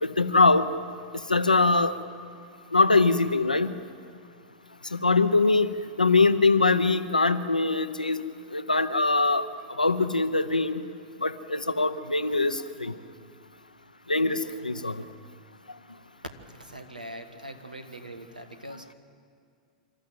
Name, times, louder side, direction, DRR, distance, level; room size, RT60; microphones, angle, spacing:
voice 1, 0.0-0.7 1.1-2.0 2.7-3.7 4.9-5.7 6.0-8.2 8.5-9.5 9.8-10.8 11.2-12.9 14.1-15.0, left 3 dB, 90° left, 11 dB, 0.8 m, -23 dB
voice 2, 16.5-18.9, right 1 dB, 90° right, 8 dB, 1.4 m, -42 dB
26.0 x 13.0 x 7.6 m, 2.3 s
figure-of-eight pair, 95°, 4 cm